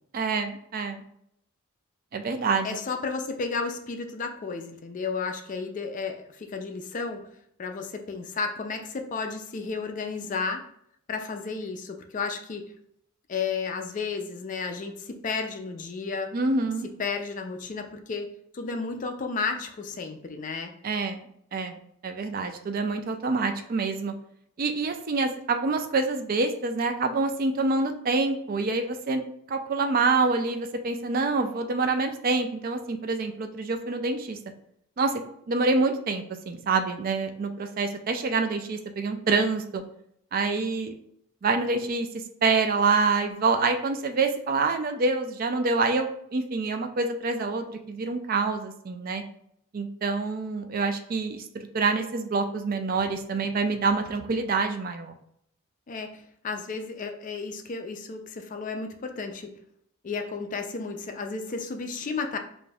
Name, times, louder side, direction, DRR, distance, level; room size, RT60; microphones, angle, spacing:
voice 1, 0.1-1.0 2.1-2.7 16.3-16.9 20.8-21.2 21.5-21.8 22.0-24.1 24.6-29.2 29.5-34.4 35.0-35.1 35.5-39.8 40.3-41.0 41.4-42.1 42.4-49.2 49.7-51.5 51.7-55.1, right 3 dB, 40° right, 6 dB, 0.3 m, -26 dB
voice 2, 2.6-7.2 7.6-10.6 11.1-12.6 13.3-16.3 17.0-20.7 55.9-59.5 60.0-62.4, left 4 dB, 35° left, 5 dB, 0.3 m, -33 dB
4.9 x 2.6 x 2.3 m, 0.70 s
head